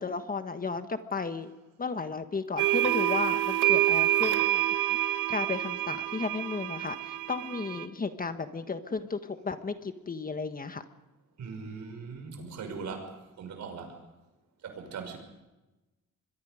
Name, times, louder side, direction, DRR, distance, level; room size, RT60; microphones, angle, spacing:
voice 1, 0.0-1.5 1.8-4.6 5.1-10.8, left 4 dB, 30° left, 9 dB, 1.5 m, -34 dB
sound 1, 2.6-7.9, right 14 dB, 85° right, 1.0 m, -27 dB
voice 2, 11.4-14.0 14.6-15.2, right 5 dB, 70° right, 5 dB, 5.7 m, -40 dB
25.0 x 22.5 x 5.2 m, 1.0 s
cardioid pair, 90°, 30 cm